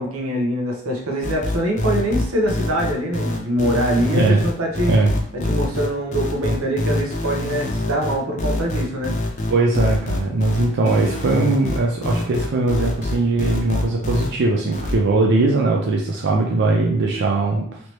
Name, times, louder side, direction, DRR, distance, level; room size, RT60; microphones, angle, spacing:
voice 1, 0.0-5.0 5.3-9.1, right 1 dB, 85° right, 0 dB, 0.8 m, -23 dB
sound 1, 1.2-14.3 14.7-15.0, left 1 dB, 35° left, 0.6 m, -24 dB
voice 2, 9.5-17.8, right 2 dB, 55° right, 0 dB, 0.4 m, -20 dB
3.2 x 2.8 x 3.0 m, 0.62 s
head